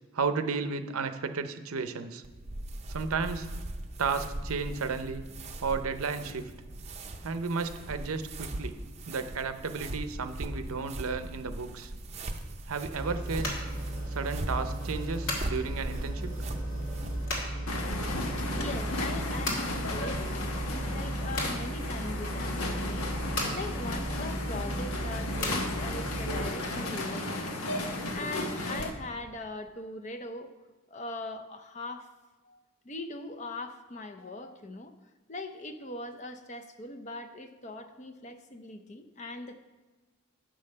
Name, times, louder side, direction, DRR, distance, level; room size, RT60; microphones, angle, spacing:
voice 1, 0.1-2.2 2.9-3.5 4.0-5.2 5.6-6.5 7.2-8.7 9.1-11.9 12.7-13.5 14.1-16.3, right 5 dB, 80° right, 9 dB, 0.6 m, -33 dB
sound 1, 2.2-17.3, right 1 dB, 30° right, 0.6 m, -40 dB
sound 2, 13.0-26.5, equal, 65° left, 2.0 m, -35 dB
sound 3, 17.7-28.9, left 2 dB, 85° left, 1.1 m, -34 dB
voice 2, 18.4-27.6 28.1-30.6 30.9-32.1 32.4-34.9 35.3-39.5, left 2 dB, 35° left, 7 dB, 0.5 m, -41 dB
8.6 x 5.5 x 6.5 m, 1.3 s
head